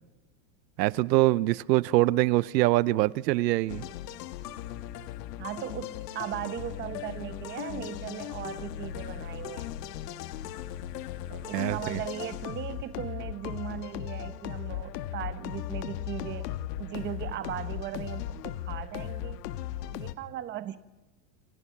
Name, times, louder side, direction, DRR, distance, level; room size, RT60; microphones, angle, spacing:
voice 1, 0.8-3.8 11.5-12.0, right 18 dB, 80° right, 0.8 m, -24 dB
sound 1, 3.7-20.1, left 12 dB, 75° left, 1.7 m, -37 dB
voice 2, 5.4-9.7 11.3-19.4 19.9-20.8, right 12 dB, 20° right, 1.0 m, -38 dB
29.0 x 25.5 x 6.0 m
supercardioid pair, 165°, 49 cm